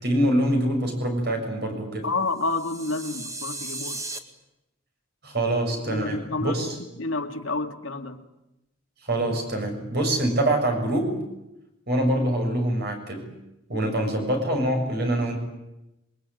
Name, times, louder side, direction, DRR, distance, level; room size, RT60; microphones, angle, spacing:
voice 1, 0.0-2.1 5.2-6.7 9.0-11.2 11.9-13.3 13.7-15.4, right 1 dB, 50° right, 4 dB, 7.0 m, -25 dB
voice 2, 2.0-4.0 5.9-6.7 7.0-8.2, left 3 dB, 75° left, 5 dB, 2.2 m, -29 dB
sound 1, 2.4-4.2, right 2 dB, 15° right, 1.9 m, -36 dB
26.5 x 22.5 x 9.1 m, 0.91 s
head